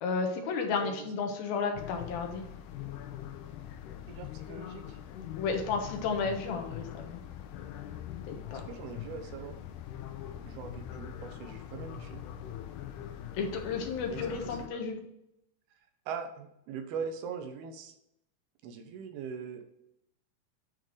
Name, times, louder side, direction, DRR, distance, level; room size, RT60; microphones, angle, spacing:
voice 1, 0.0-2.4 5.4-7.2 8.2-8.6 13.4-15.0, left 5 dB, 70° left, 3 dB, 2.8 m, -32 dB
sound 1, 1.8-14.7, left 10 dB, 90° left, 1.8 m, -43 dB
voice 2, 4.1-5.0 8.5-9.6 10.4-12.2 14.0-14.9 16.1-17.9 18.6-19.6, right 6 dB, 80° right, 6 dB, 2.8 m, -41 dB
9.8 x 4.5 x 4.8 m, 0.79 s
omnidirectional pair, 4.6 m